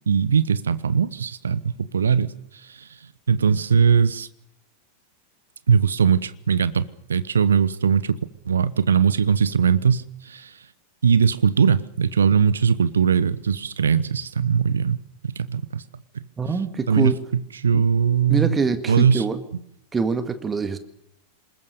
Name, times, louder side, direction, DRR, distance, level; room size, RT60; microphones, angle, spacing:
voice 1, 0.1-2.3 2.7-2.8 3.3-4.3 5.7-8.2 8.5-10.5 11.0-15.8 16.1-16.2 16.9-18.6 18.9-19.2, right 6 dB, 70° right, 1.0 m, -20 dB
voice 2, 16.4-17.2 17.7-17.8 18.3-19.4 19.9-20.8, right 4 dB, 15° right, 2.0 m, -24 dB
26.5 x 21.0 x 6.8 m
figure-of-eight pair, 90°, 0 cm